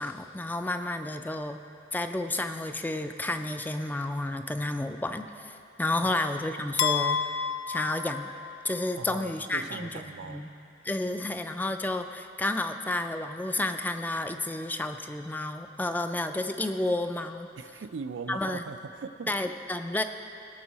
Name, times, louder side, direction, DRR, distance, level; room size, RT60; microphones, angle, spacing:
voice 1, 0.0-1.6 1.9-7.2 7.7-8.3 8.6-10.5 10.8-17.5 18.3-18.6 19.3-20.0, left 2 dB, 10° left, 8 dB, 0.3 m, -31 dB
sound 1, 6.8-8.9, left 6 dB, 85° left, 0.4 m, -30 dB
voice 2, 8.9-10.4 17.6-19.3, right 5 dB, 90° right, 10 dB, 0.4 m, -40 dB
18.5 x 6.2 x 4.1 m, 2.8 s
head